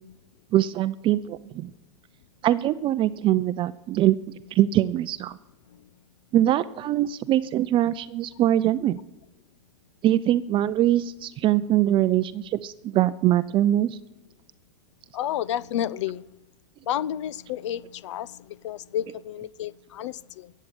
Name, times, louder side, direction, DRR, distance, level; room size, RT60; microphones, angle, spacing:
voice 1, 0.5-1.7 2.4-5.4 6.3-9.0 10.0-14.0, right 13 dB, 30° right, 13 dB, 0.5 m, -23 dB
voice 2, 15.1-16.3 16.9-20.5, left 11 dB, 65° left, 22 dB, 0.5 m, -31 dB
14.5 x 8.5 x 9.2 m, 0.94 s
hypercardioid pair, 105°, 16 cm